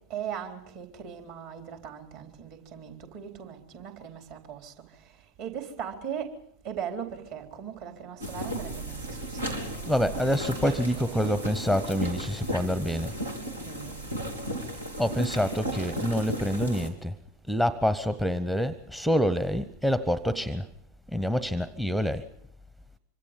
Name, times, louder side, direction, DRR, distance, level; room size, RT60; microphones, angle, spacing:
voice 1, 0.0-11.3 13.6-14.1, right 8 dB, 45° right, 4.0 m, -39 dB
sound 1, 8.2-16.9, right 1 dB, 80° right, 3.4 m, -35 dB
voice 2, 9.8-13.1 15.0-17.1 17.5-20.7 21.1-22.2, equal, 5° right, 0.9 m, -27 dB
26.0 x 25.5 x 5.3 m
figure-of-eight pair, 90°, 0 cm